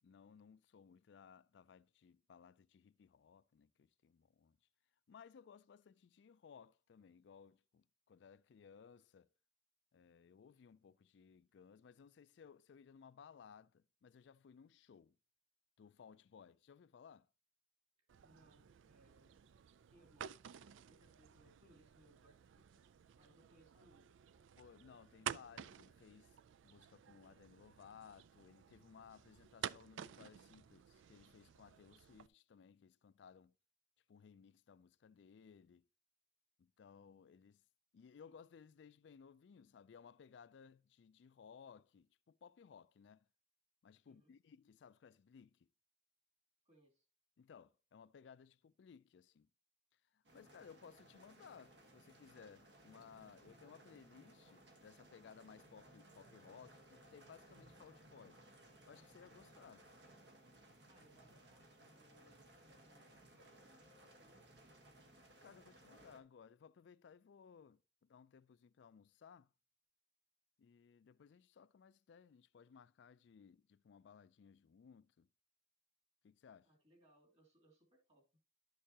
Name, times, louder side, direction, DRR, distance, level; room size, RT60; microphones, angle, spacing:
voice 1, 0.0-4.6 5.1-9.3 9.9-15.2 15.8-17.3 24.5-26.4 26.6-33.5 34.1-35.9 36.6-37.6 37.9-43.3 43.8-45.7 47.4-49.5 49.9-58.4 58.9-59.9 65.2-69.5 70.6-75.3 76.2-76.7, left 6 dB, 70° left, 0.3 m, -61 dB
sound 1, 18.1-32.3, right 9 dB, 90° right, 0.3 m, -52 dB
voice 2, 18.2-19.6 19.9-22.8 23.1-24.5 44.0-44.3 46.6-47.1 60.9-64.6 76.6-78.2, right 1 dB, 35° right, 2.7 m, -70 dB
sound 2, 50.2-66.2, right 1 dB, 70° right, 1.4 m, -63 dB
11.0 x 6.6 x 2.8 m
head